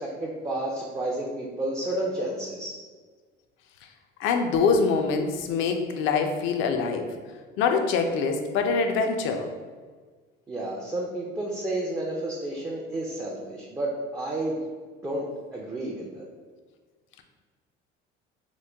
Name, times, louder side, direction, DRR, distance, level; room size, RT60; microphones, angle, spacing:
voice 1, 0.0-2.7 10.5-14.6 15.0-15.2 15.5-16.3, right 1 dB, 15° right, -3 dB, 0.4 m, -31 dB
voice 2, 4.2-7.1 7.6-9.5, left 5 dB, 65° left, 5 dB, 0.5 m, -24 dB
3.0 x 2.1 x 3.3 m, 1.5 s
cardioid pair, 110°, 21 cm